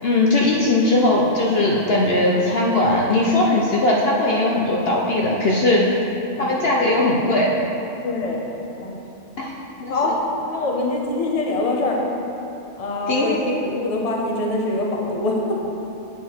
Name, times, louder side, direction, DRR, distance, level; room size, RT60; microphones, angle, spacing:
voice 1, 0.0-5.8 6.4-7.5 9.4-9.5 9.8-9.9 13.1-13.5, left 2 dB, 55° left, -3 dB, 0.9 m, -19 dB
voice 2, 6.3-6.6 8.0-8.5 8.8-9.0 9.9-10.2 10.5-12.0 12.8-15.6, left 2 dB, 30° left, -1 dB, 1.0 m, -24 dB
8.3 x 6.9 x 4.4 m, 2.9 s
omnidirectional pair, 1.3 m